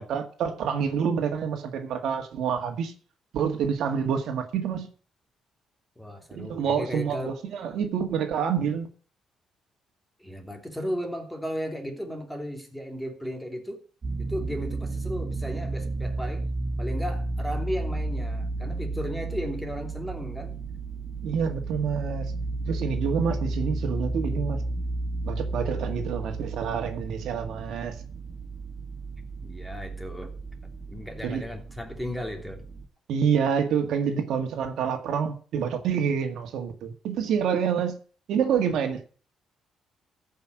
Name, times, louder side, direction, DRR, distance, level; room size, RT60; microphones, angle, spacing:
voice 1, 0.0-2.9 3.3-4.9 6.3-8.9 21.2-22.3 22.7-24.6 25.2-28.0 31.2-31.4 33.1-38.0 38.3-39.1, right 7 dB, 75° right, 2.0 m, -27 dB
voice 2, 6.0-7.4 10.2-13.8 14.2-16.4 16.8-20.6 29.4-30.3 30.9-32.6, equal, 5° left, 3.1 m, -35 dB
sound 1, 14.0-32.8, right 2 dB, 40° right, 3.2 m, -33 dB
14.5 x 5.7 x 7.8 m
cardioid pair, 90°, 0 cm